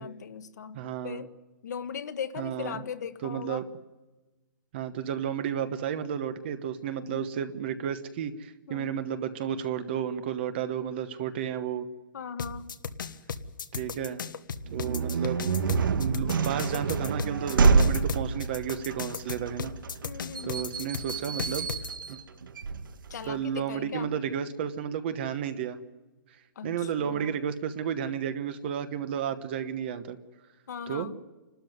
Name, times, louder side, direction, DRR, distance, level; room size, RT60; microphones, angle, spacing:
voice 1, 0.0-0.8 1.0-1.3 1.6-3.7 7.0-7.3 8.7-9.1 12.1-12.7 20.0-20.8 23.1-24.1 26.5-27.4 30.7-31.2, left 7 dB, 60° left, 10 dB, 1.5 m, -39 dB
voice 2, 0.7-1.2 2.4-2.8 3.2-3.6 4.7-11.9 13.7-14.2 14.7-15.4 16.0-19.7 20.4-21.7 22.1-22.2 23.3-25.8 26.6-30.2 30.9-31.1, right 8 dB, 30° right, 10 dB, 1.1 m, -32 dB
sound 1, 12.4-21.9, left 6 dB, 75° left, 1.4 m, -36 dB
sound 2, 14.7-23.4, right 4 dB, 90° right, 1.7 m, -27 dB
28.5 x 13.0 x 9.5 m, 1.2 s
hypercardioid pair, 170°, 11 cm